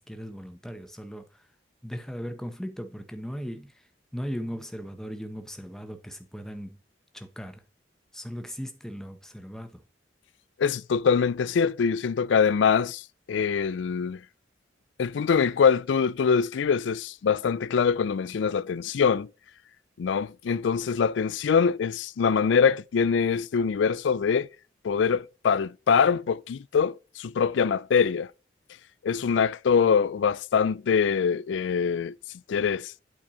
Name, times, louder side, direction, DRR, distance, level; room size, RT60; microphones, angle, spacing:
voice 1, 0.0-1.4 1.8-6.8 7.1-7.6 8.1-9.8, equal, 5° left, 0.9 m, -38 dB
voice 2, 10.6-14.2 15.0-19.3 20.0-24.5 24.8-28.3 29.0-32.2 32.5-32.9, left 6 dB, 75° left, 0.4 m, -24 dB
8.6 x 4.4 x 5.0 m
head